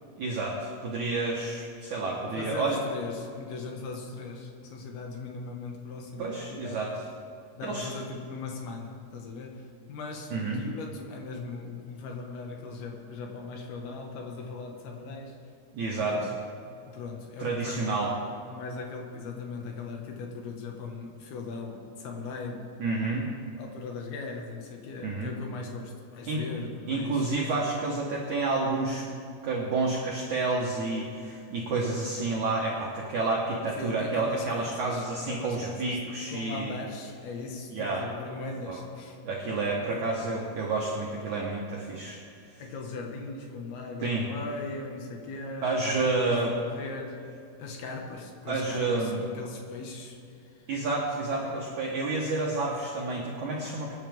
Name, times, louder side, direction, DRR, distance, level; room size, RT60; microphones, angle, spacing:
voice 1, 0.2-2.8 6.2-6.9 7.6-7.9 10.3-10.6 15.7-16.3 17.4-18.1 22.8-23.2 25.0-25.3 26.3-26.4 26.9-29.0 29.4-36.8 37.7-38.1 38.7-38.8 39.2-42.2 44.0-44.3 45.6-46.5 48.5-49.2 50.7-54.0, right 3 dB, 60° right, -3 dB, 2.1 m, -29 dB
voice 2, 2.4-6.8 7.6-15.4 15.9-16.4 16.8-18.0 18.5-22.7 23.6-27.3 33.8-39.2 39.9-40.1 42.6-46.4 46.7-47.2 47.6-50.2 50.4-50.6, left 3 dB, 65° left, 1 dB, 3.3 m, -39 dB
27.0 x 10.0 x 3.6 m, 2.4 s
omnidirectional pair, 5.1 m